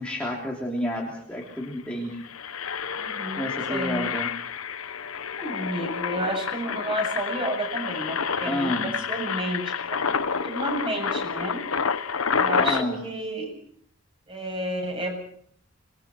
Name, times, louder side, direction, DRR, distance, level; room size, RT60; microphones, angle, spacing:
voice 1, 0.0-2.2 3.4-4.4 8.5-8.9 12.6-13.0, left 1 dB, 5° left, -2 dB, 3.3 m, -30 dB
Engine, 1.1-1.2 1.4-1.6 2.1-12.8, left 6 dB, 85° left, 1.1 m, -29 dB
voice 2, 3.0-4.1 5.4-11.6 12.3-13.6 14.3-15.2, right 1 dB, 25° right, 2 dB, 7.7 m, -31 dB
26.0 x 21.5 x 6.0 m, 0.63 s
head